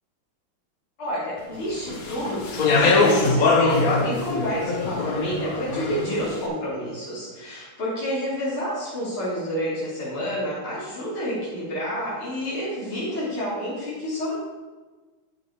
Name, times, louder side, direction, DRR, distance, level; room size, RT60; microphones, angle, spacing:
voice 1, 1.0-14.3, equal, 70° left, -9 dB, 4.2 m, -29 dB
Speech, 1.9-6.2, left 3 dB, 50° left, 1.2 m, -22 dB
8.7 x 7.5 x 4.8 m, 1.3 s
omnidirectional pair, 2.4 m